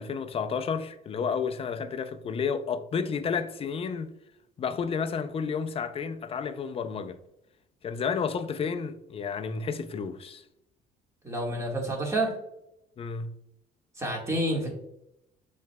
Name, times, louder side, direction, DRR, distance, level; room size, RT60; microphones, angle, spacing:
voice 1, 0.0-4.1 4.6-7.2 7.8-10.4 13.0-13.3, left 6 dB, 35° left, 0.4 m, -31 dB
voice 2, 11.2-12.3 14.0-14.7, right 1 dB, 15° right, 1.6 m, -28 dB
7.2 x 3.2 x 2.2 m
cardioid pair, 110°, 17 cm